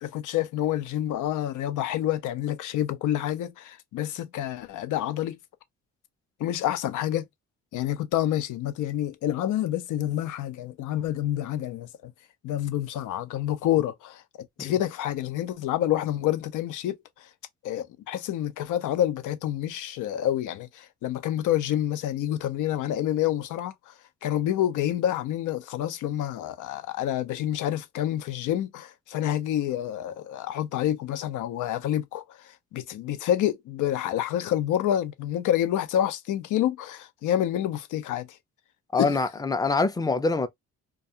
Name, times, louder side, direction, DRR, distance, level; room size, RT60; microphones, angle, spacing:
voice 1, 0.0-5.4 6.4-7.3 7.7-12.1 12.4-14.2 14.6-17.3 17.6-23.9 24.2-38.4 39.0-39.1, left 12 dB, 80° left, 0.6 m, -28 dB
voice 2, 38.9-40.5, left 3 dB, 15° left, 0.5 m, -24 dB
2.4 x 2.3 x 2.7 m
cardioid pair, 90°, 30 cm